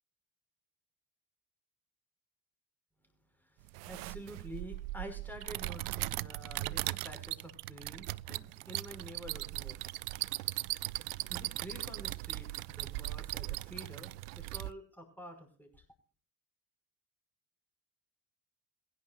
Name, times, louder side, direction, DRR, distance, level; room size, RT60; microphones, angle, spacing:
voice 1, 3.4-9.8 10.9-15.8, right 1 dB, 5° left, 5 dB, 5.5 m, -49 dB
sound 1, 3.7-14.7, right 19 dB, 65° right, 0.5 m, -39 dB
22.5 x 10.0 x 2.5 m, 0.41 s
figure-of-eight pair, 45°, 50 cm